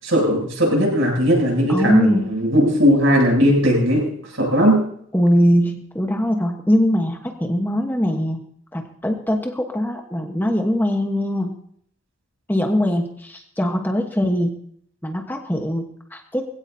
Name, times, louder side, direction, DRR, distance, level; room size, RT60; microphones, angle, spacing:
voice 1, 0.0-4.0 4.3-4.8, equal, 65° right, -1 dB, 7.7 m, -18 dB
voice 2, 1.7-2.3 5.1-8.4 8.7-11.6 12.5-14.5 15.0-16.5, equal, 10° left, 3 dB, 1.1 m, -21 dB
21.0 x 16.0 x 2.8 m, 0.63 s
head